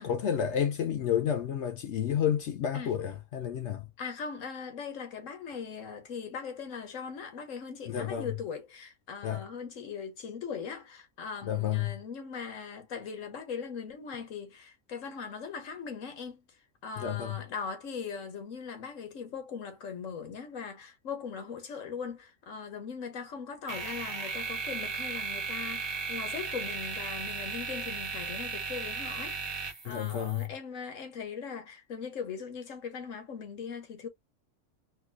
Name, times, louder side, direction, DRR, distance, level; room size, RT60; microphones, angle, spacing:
voice 1, 0.0-3.9 7.9-8.4 9.2-9.5 11.4-12.0 17.0-17.4 29.8-30.5, left 9 dB, 70° left, 0.8 m, -30 dB
voice 2, 4.0-16.4 16.8-34.1, left 6 dB, 90° left, 1.4 m, -40 dB
sound 1, 23.7-30.5, right 4 dB, 25° right, 0.7 m, -36 dB
4.3 x 2.3 x 2.3 m
omnidirectional pair, 1.3 m